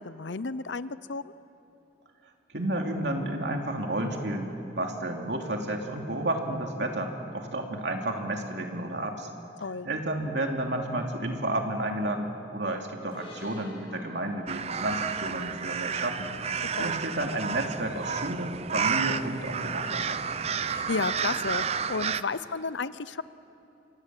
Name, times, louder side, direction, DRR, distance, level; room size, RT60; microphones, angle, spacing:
voice 1, 0.0-1.3 9.6-9.9 16.7-17.0 20.6-23.2, left 4 dB, 75° left, 15 dB, 0.8 m, -33 dB
voice 2, 2.5-9.3 9.8-16.3 16.8-20.2, right 1 dB, 65° right, 2 dB, 2.8 m, -31 dB
sound 1, 13.1-16.6, left 1 dB, 30° left, 6.8 m, -52 dB
sound 2, 14.5-22.2, right 6 dB, 35° right, 0.6 m, -31 dB
28.5 x 25.0 x 7.6 m, 2.8 s
head